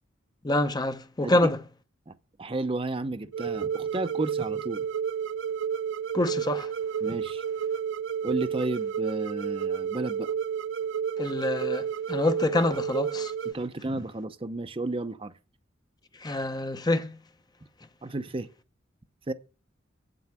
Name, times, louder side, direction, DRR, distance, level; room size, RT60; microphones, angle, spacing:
voice 1, 0.4-1.6 6.1-6.7 11.2-13.3 16.2-17.2, left 1 dB, 20° left, 0.7 m, -26 dB
voice 2, 2.1-4.9 7.0-7.4 8.2-10.3 13.5-15.3 18.0-18.5 19.3-19.4, right 2 dB, 30° right, 0.7 m, -32 dB
sound 1, 3.3-13.5, right 7 dB, 75° right, 0.4 m, -31 dB
8.5 x 7.7 x 7.2 m
head